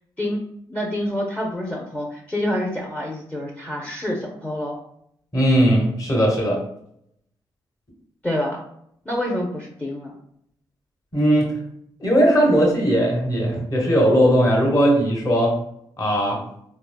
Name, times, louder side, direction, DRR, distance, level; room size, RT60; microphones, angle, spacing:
voice 1, 0.7-4.8 8.2-8.6 9.1-10.1, left 1 dB, 15° left, -1 dB, 0.6 m, -27 dB
voice 2, 5.3-6.6 11.1-11.5 12.0-15.6 16.0-16.4, equal, 35° left, 0 dB, 1.3 m, -18 dB
3.2 x 2.0 x 2.3 m, 0.71 s
supercardioid pair, 50°, 10 cm